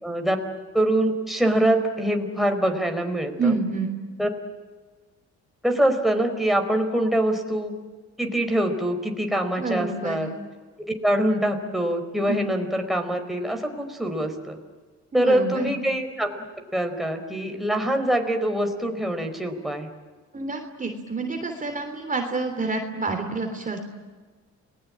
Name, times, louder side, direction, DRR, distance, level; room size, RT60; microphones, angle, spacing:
voice 1, 0.0-0.4 0.7-3.5 4.2-4.3 5.6-7.7 8.2-10.3 10.9-14.6 15.1-16.3 16.7-19.9, right 1 dB, ahead, 4 dB, 4.5 m, -24 dB
voice 2, 3.4-3.9 9.6-10.3 12.3-12.4 15.1-15.7 20.3-23.8, right 3 dB, 25° right, 5 dB, 3.3 m, -28 dB
30.0 x 20.5 x 8.8 m, 1.4 s
cardioid pair, 90°, 30 cm